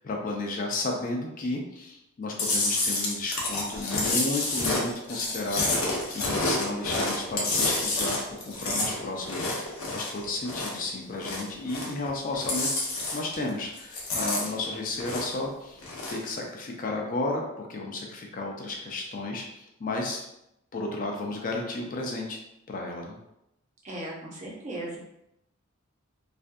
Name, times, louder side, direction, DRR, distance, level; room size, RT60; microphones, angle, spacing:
voice 1, 0.0-12.7 13.1-15.8 16.1-20.2 20.7-22.4 22.7-23.2, left 2 dB, 40° left, 1 dB, 0.4 m, -33 dB
Chewing mastication, 2.4-10.8 11.1-12.1 12.3-13.5 13.8-15.4 15.8-16.3, left 2 dB, 80° left, 0.7 m, -29 dB
voice 2, 23.8-25.0, right 1 dB, 35° right, -3 dB, 0.6 m, -37 dB
2.5 x 2.2 x 2.5 m, 0.83 s
head